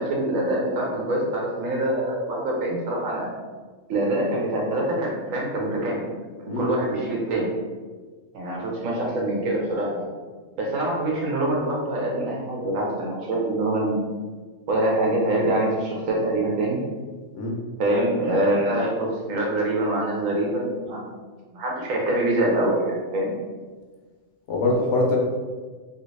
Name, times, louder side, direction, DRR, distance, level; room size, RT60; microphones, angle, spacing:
voice 1, 0.0-3.3 3.9-6.0 6.6-7.5 8.3-10.1 10.6-14.0 14.7-16.8 17.8-21.1 21.5-23.3, right 1 dB, 85° right, -2 dB, 1.2 m, -25 dB
voice 2, 24.5-25.2, left 2 dB, 70° left, -1 dB, 1.0 m, -23 dB
2.9 x 2.8 x 3.1 m, 1.4 s
omnidirectional pair, 1.3 m